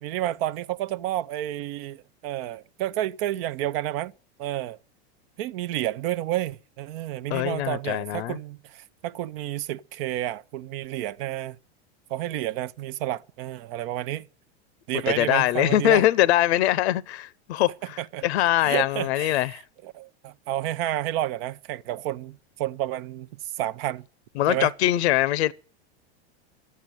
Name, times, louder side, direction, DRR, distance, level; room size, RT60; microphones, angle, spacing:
voice 1, 0.0-4.1 4.4-4.8 5.4-11.6 12.1-14.3 14.9-16.1 18.0-18.2 18.6-19.5 19.8-23.3 23.6-24.1 24.5-24.7, right 13 dB, 60° right, 0.7 m, -30 dB
voice 2, 7.3-8.4 15.1-19.6 24.4-25.5, left 14 dB, 80° left, 0.7 m, -23 dB
12.5 x 8.5 x 9.0 m
supercardioid pair, 115°, 32 cm